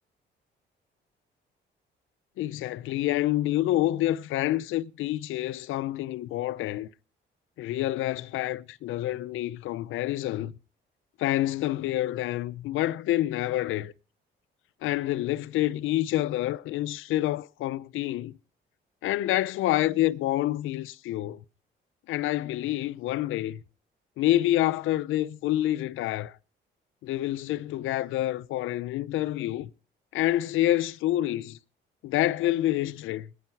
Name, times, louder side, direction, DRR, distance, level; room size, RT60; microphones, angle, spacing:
voice 1, 2.4-6.9 7.6-10.5 11.2-13.9 14.8-18.3 19.0-21.4 22.1-23.6 24.2-26.3 27.0-29.7 30.1-31.6 32.0-33.3, left 14 dB, 85° left, 0.6 m, -27 dB
18.0 x 10.0 x 4.6 m
cardioid pair, 90°, 20 cm